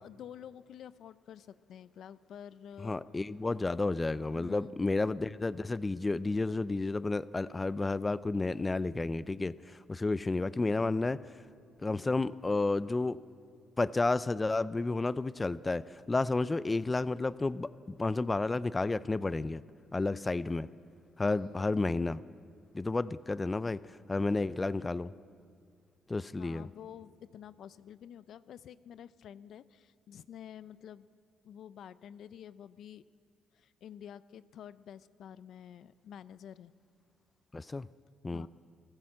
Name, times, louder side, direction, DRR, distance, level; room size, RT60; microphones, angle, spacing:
voice 1, 0.0-3.0 4.3-4.8 21.2-21.8 26.4-31.1 31.4-33.1 33.5-36.7 38.3-38.5, left 9 dB, 70° left, 16 dB, 0.5 m, -49 dB
voice 2, 2.8-11.2 11.8-13.2 13.8-17.7 18.0-19.6 19.9-20.7 21.2-22.2 22.7-23.8 24.1-25.1 26.1-26.7 37.5-37.9 38.2-38.5, left 3 dB, 20° left, 17 dB, 0.4 m, -31 dB
27.5 x 14.5 x 7.6 m, 2.2 s
cardioid pair, 90°, 0 cm